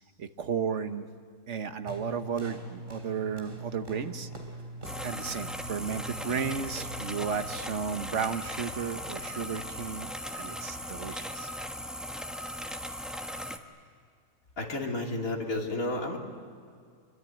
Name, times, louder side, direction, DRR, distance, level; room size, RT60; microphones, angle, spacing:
voice 1, 0.2-1.1 1.5-4.3 5.0-11.5, right 6 dB, 50° right, 8 dB, 1.4 m, -34 dB
sound 1, 1.9-7.7, right 2 dB, 35° right, 3.2 m, -43 dB
sound 2, 4.8-13.6, equal, ahead, 1.1 m, -38 dB
voice 2, 14.6-16.2, left 2 dB, 60° left, 0 dB, 3.6 m, -31 dB
26.5 x 24.0 x 9.2 m, 2.2 s
omnidirectional pair, 1.6 m